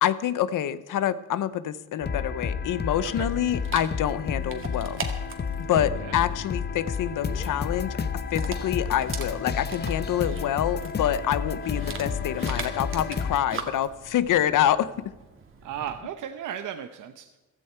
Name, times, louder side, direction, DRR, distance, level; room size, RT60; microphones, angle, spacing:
voice 1, 0.0-5.0 5.6-8.0 8.3-14.9, left 11 dB, 85° left, 15 dB, 0.8 m, -26 dB
sound 1, 2.0-13.4, left 6 dB, 35° left, 0.8 m, -31 dB
Dog, 3.1-16.0, right 4 dB, 40° right, 2.0 m, -41 dB
voice 2, 5.7-6.2 15.6-17.4, right 9 dB, 75° right, 7 dB, 0.9 m, -36 dB
15.5 x 14.0 x 4.5 m, 1.1 s
cardioid pair, 135°, 31 cm